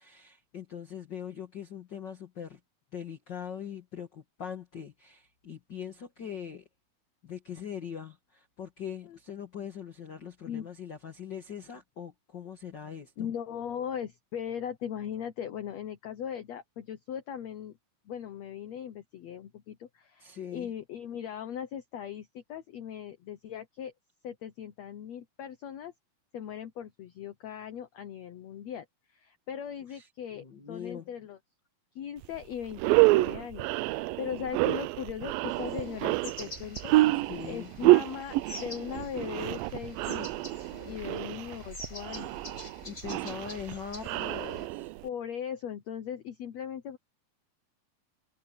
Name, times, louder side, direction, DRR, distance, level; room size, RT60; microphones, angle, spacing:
voice 1, 0.0-2.6 2.9-6.6 7.2-13.3 20.2-20.7 29.9-31.1 37.2-37.7 40.7-41.1 42.9-44.9, left 8 dB, 45° left, 1.5 m, -42 dB
voice 2, 13.2-17.8 18.0-23.9 24.2-25.9 26.3-31.4 31.9-37.2 37.5-40.4 40.8-42.3 45.0-47.0, left 9 dB, 80° left, 1.5 m, -39 dB
sound 1, 32.2-32.4 32.7-45.1, right 19 dB, 85° right, 2.0 m, -28 dB
sound 2, 35.5-44.7, left 1 dB, 15° left, 6.8 m, -47 dB
omnidirectional pair, 4.5 m